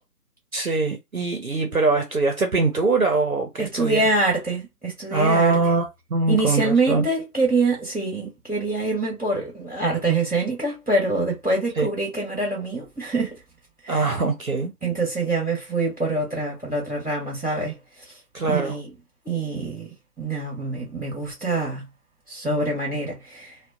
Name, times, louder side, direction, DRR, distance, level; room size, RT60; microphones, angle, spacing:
voice 1, 0.5-4.0 5.1-7.1 11.8-11.9 13.9-14.7 18.3-18.8, right 3 dB, 60° right, 0.6 m, -22 dB
voice 2, 3.6-5.6 6.3-13.4 13.8-14.1 14.8-17.8 18.4-18.9 19.2-19.9 20.2-21.9 22.3-23.5, right 2 dB, 5° left, 1.5 m, -25 dB
2.7 x 2.1 x 2.3 m
figure-of-eight pair, 160°, 48 cm